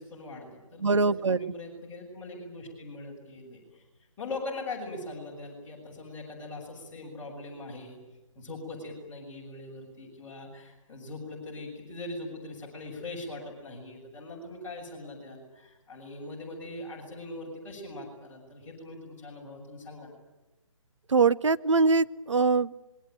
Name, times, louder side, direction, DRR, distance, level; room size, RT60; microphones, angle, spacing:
voice 1, 0.0-3.8 4.2-8.0 8.3-20.1, left 2 dB, 10° left, -4 dB, 6.7 m, -41 dB
voice 2, 0.8-1.5 21.1-22.9, right 4 dB, 60° right, 15 dB, 0.8 m, -23 dB
26.5 x 23.0 x 9.2 m, 1.0 s
figure-of-eight pair, 145°, 17 cm